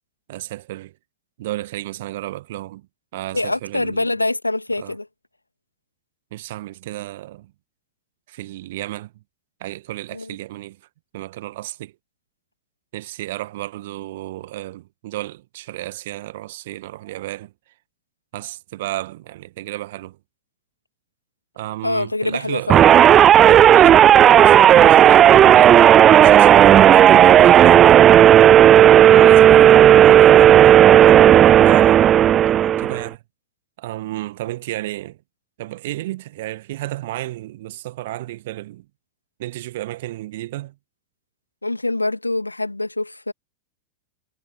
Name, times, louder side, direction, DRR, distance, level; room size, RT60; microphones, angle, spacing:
voice 1, 0.3-0.9 1.4-2.9 3.1-4.1 4.8-4.9 6.3-7.5 8.3-9.1 9.6-10.8 11.1-11.9 12.9-17.5 18.3-20.2 21.6-23.0 23.3-28.0 29.1-32.0 32.8-33.2 33.8-35.2 35.6-38.9 39.4-40.8, right 16 dB, 55° right, 1.6 m, -32 dB
voice 2, 3.3-5.1 10.1-10.3 21.8-22.8 41.6-43.3, left 2 dB, 85° left, 2.4 m, -24 dB
sound 1, 22.7-33.1, right 10 dB, 30° right, 0.3 m, -10 dB
figure-of-eight pair, 90°, 0 cm